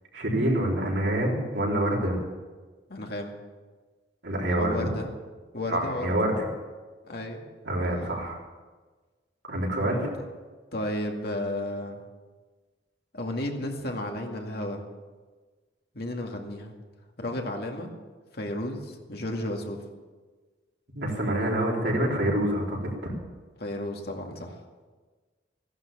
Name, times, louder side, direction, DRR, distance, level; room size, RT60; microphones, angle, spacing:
voice 1, 0.1-2.2 4.2-5.0 5.7-6.5 7.6-8.4 9.5-10.1 20.9-23.1, right 1 dB, 75° right, -3 dB, 4.0 m, -26 dB
voice 2, 2.9-3.3 4.6-5.1 5.5-6.1 7.0-7.4 10.7-12.0 13.1-14.8 15.9-16.7 17.2-17.9 18.3-19.8 23.6-24.6, left 1 dB, 60° left, 2 dB, 2.2 m, -33 dB
15.5 x 11.5 x 7.2 m, 1.4 s
head